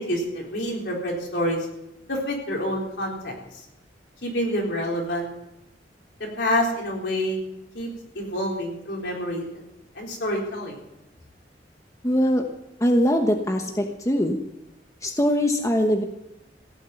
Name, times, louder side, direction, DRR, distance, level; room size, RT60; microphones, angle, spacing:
voice 1, 0.0-1.6 2.1-3.3 4.2-5.3 6.4-7.4 7.7-7.9 8.1-9.6 9.9-10.8, equal, 70° left, -1 dB, 4.1 m, -27 dB
voice 2, 12.0-12.4 12.8-14.4 15.0-16.0, equal, 20° left, 3 dB, 1.1 m, -22 dB
16.0 x 7.2 x 9.2 m, 0.89 s
head